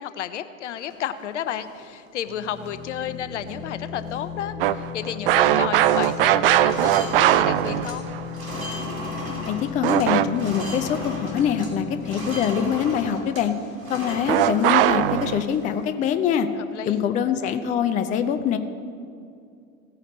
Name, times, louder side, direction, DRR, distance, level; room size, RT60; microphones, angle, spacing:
voice 1, 0.0-8.1 16.7-17.1, left 10 dB, 60° left, 13 dB, 0.7 m, -32 dB
sound 1, 0.8-1.9 2.3-2.4 2.6-3.0 3.4-3.7 4.0-5.0 5.3-5.5 5.8-11.7 12.0-15.8, equal, 75° right, 2.8 m, -36 dB
sound 2, 2.3-13.8, left 8 dB, 80° left, 1.3 m, -37 dB
sound 3, 4.6-8.3 9.8-10.6 14.3-15.4, right 13 dB, 45° right, 0.4 m, -20 dB
voice 2, 9.5-13.5 13.9-16.5 16.9-18.6, left 8 dB, 20° left, 9 dB, 0.5 m, -24 dB
17.0 x 9.0 x 4.2 m, 2.4 s
figure-of-eight pair, 85°, 41 cm